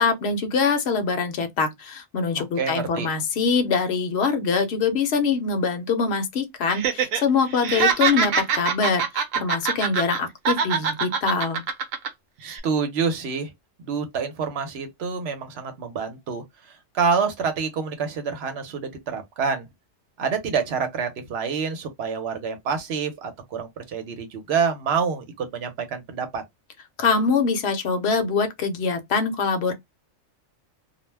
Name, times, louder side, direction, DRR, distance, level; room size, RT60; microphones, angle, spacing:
voice 1, 0.0-11.6 27.0-29.7, left 5 dB, 60° left, 0.9 m, -24 dB
voice 2, 2.6-3.1 12.4-13.5 13.8-19.7 20.2-26.4, right 6 dB, 60° right, 0.9 m, -27 dB
Laughter, 6.7-7.2 7.5-10.2 10.4-12.1 12.4-12.6, right 6 dB, 80° right, 1.0 m, -24 dB
2.4 x 2.1 x 3.2 m
omnidirectional pair, 1.3 m